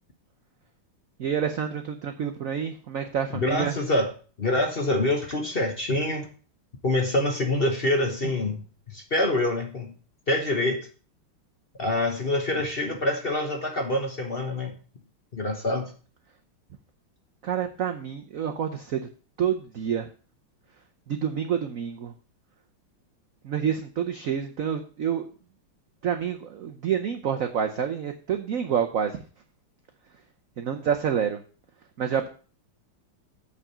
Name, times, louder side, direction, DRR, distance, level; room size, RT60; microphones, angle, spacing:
voice 1, 1.2-3.7 17.4-19.0 19.4-20.1 21.1-22.1 23.4-25.2 26.0-29.2 30.6-31.4 32.0-32.3, right 8 dB, 70° right, 6 dB, 0.8 m, -28 dB
voice 2, 3.3-4.1 4.4-6.3 6.8-9.9 10.3-10.9 11.8-14.8 15.3-15.9, left 1 dB, 35° left, 3 dB, 1.1 m, -26 dB
8.8 x 4.9 x 6.7 m, 0.38 s
omnidirectional pair, 2.3 m